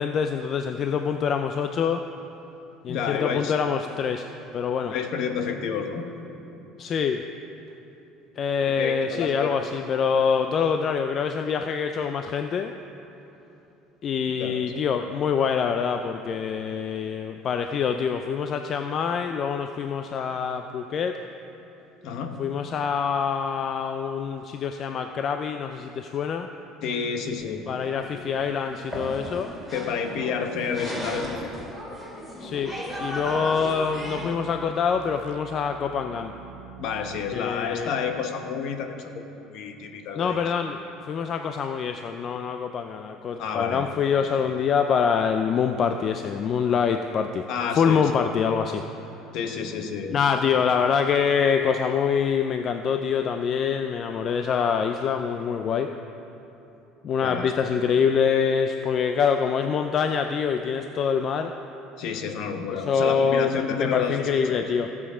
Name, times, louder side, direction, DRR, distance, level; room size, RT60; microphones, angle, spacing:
voice 1, 0.0-2.0 2.8-4.3 4.5-4.9 6.8-7.3 8.4-12.7 14.0-21.2 22.4-26.5 27.7-29.5 32.4-36.3 37.3-37.9 40.2-47.5 47.7-48.9 50.1-55.9 57.0-61.5 62.7-64.9, left 6 dB, 40° left, 7 dB, 0.4 m, -25 dB
voice 2, 2.9-3.5 4.9-6.1 8.6-9.7 14.4-14.6 22.0-22.4 26.8-27.7 29.7-31.6 36.8-40.5 43.4-43.9 47.5-48.1 49.3-50.2 57.2-57.5 62.0-64.7, left 6 dB, 60° left, 6 dB, 1.0 m, -30 dB
sound 1, 27.1-34.4, equal, 10° left, 2.5 m, -36 dB
sound 2, 32.6-37.4, right 10 dB, 80° right, 0.6 m, -45 dB
15.5 x 7.3 x 5.0 m, 2.9 s
cardioid pair, 145°, 0 cm